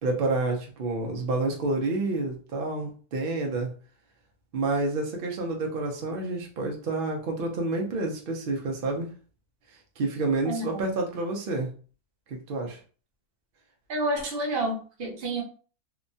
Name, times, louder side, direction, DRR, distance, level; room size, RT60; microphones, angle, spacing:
voice 1, 0.0-3.7 4.5-9.1 10.0-11.7 12.3-12.8, right 2 dB, 85° right, 1 dB, 0.4 m, -29 dB
voice 2, 10.5-10.8 13.9-15.4, right 1 dB, 50° right, 0 dB, 0.8 m, -29 dB
2.9 x 2.2 x 2.6 m, 0.40 s
omnidirectional pair, 1.6 m